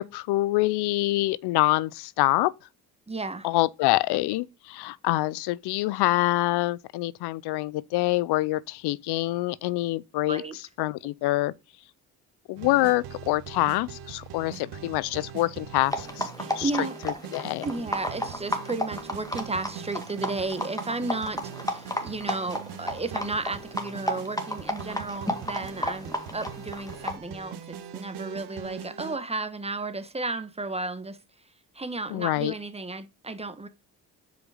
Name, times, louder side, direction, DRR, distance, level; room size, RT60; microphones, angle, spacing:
voice 1, 0.0-2.5 3.4-10.4 10.8-11.5 12.5-17.7 32.1-32.5, left 18 dB, 85° left, 0.5 m, -26 dB
voice 2, 3.1-3.5 10.3-10.6 16.4-17.0 17.6-31.2 31.7-33.7, right 3 dB, 15° right, 1.2 m, -33 dB
sound 1, 12.6-29.2, right 8 dB, 85° right, 1.2 m, -41 dB
sound 2, 15.8-27.2, left 1 dB, 10° left, 1.8 m, -33 dB
6.1 x 5.1 x 4.9 m
supercardioid pair, 65°, 39 cm